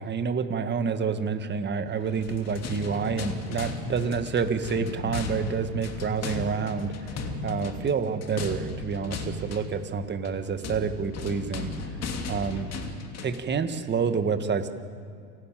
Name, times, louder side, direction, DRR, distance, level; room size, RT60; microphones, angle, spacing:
voice 1, 0.0-11.7 12.3-12.7 13.2-14.7, right 5 dB, 20° right, 8 dB, 1.6 m, -28 dB
sound 1, 2.1-13.5, left 3 dB, 30° left, 2.9 m, -36 dB
28.5 x 13.0 x 9.1 m, 2.2 s
hypercardioid pair, 105°, 50 cm